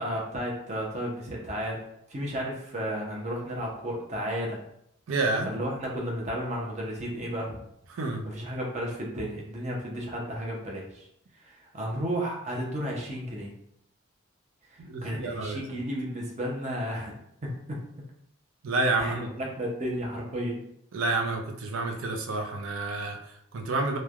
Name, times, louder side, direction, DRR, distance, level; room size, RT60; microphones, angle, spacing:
voice 1, 0.0-4.6 5.4-7.6 8.2-11.1 11.3-13.5 14.7-17.8 19.0-20.7, equal, 35° right, -2 dB, 0.6 m, -33 dB
voice 2, 5.1-5.5 7.9-8.2 14.8-15.8 18.6-19.3 20.9-24.0, right 2 dB, 80° right, 3 dB, 0.4 m, -29 dB
3.0 x 2.1 x 2.3 m, 0.74 s
head